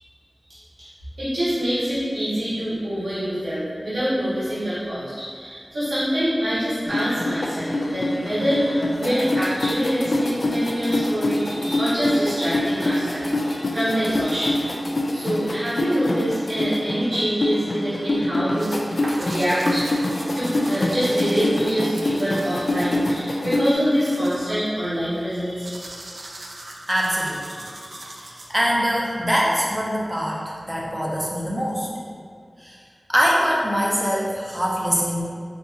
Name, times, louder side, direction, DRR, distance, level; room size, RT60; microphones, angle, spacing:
voice 1, 1.2-14.5 15.1-19.8 20.3-25.9, equal, 90° right, -13 dB, 1.2 m, -25 dB
sound 1, 6.9-23.7, left 1 dB, 65° left, 0.3 m, -25 dB
sound 2, 18.6-28.8, right 1 dB, 70° right, 0.4 m, -40 dB
voice 2, 26.9-27.6 28.2-31.9 32.6-32.8 33.1-35.2, equal, 5° right, -4 dB, 0.7 m, -23 dB
4.1 x 2.7 x 2.4 m, 2.2 s
wide cardioid pair, 50°, 0 cm